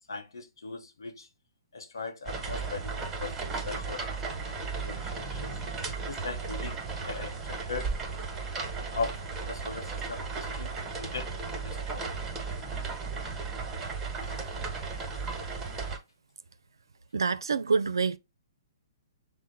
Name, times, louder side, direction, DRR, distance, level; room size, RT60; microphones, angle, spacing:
voice 1, 0.1-1.3 1.7-4.6 4.8-5.6 6.1-6.8 7.1-7.9 8.9-9.2 9.5-12.1, left 4 dB, 75° left, 0.8 m, -39 dB
sound 1, 2.3-16.0, right 4 dB, 15° right, 1.1 m, -35 dB
voice 2, 17.1-18.2, right 5 dB, 75° right, 0.4 m, -26 dB
6.1 x 2.1 x 3.9 m
figure-of-eight pair, 125°, 2 cm